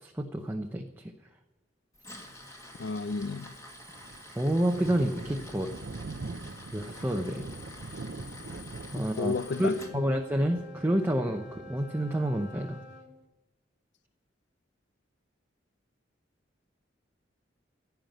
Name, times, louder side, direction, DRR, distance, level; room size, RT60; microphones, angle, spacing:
voice 1, 0.0-1.1 4.4-5.7 6.7-7.5 8.9-9.3 9.6-12.8, equal, 10° right, 0.8 m, -29 dB
Tools, 1.9-9.9, left 2 dB, 15° left, 1.8 m, -48 dB
voice 2, 2.8-3.5 9.2-10.0, left 4 dB, 65° left, 0.5 m, -32 dB
Thunder, 3.5-12.6, right 3 dB, 60° right, 0.6 m, -43 dB
Wind instrument woodwind instrument, 9.2-13.1, left 1 dB, 90° left, 2.2 m, -48 dB
15.5 x 5.8 x 9.1 m
head